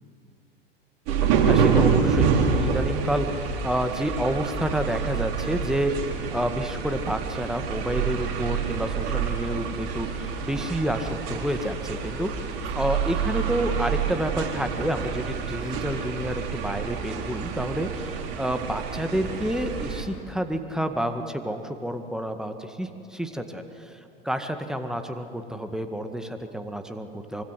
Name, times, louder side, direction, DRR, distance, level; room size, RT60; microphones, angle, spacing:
sound 1, 1.1-20.0, right 6 dB, 50° right, 3.7 m, -27 dB
voice 1, 1.2-27.4, equal, ahead, 7 dB, 2.0 m, -29 dB
25.0 x 25.0 x 7.8 m, 2.8 s
figure-of-eight pair, 85°, 29 cm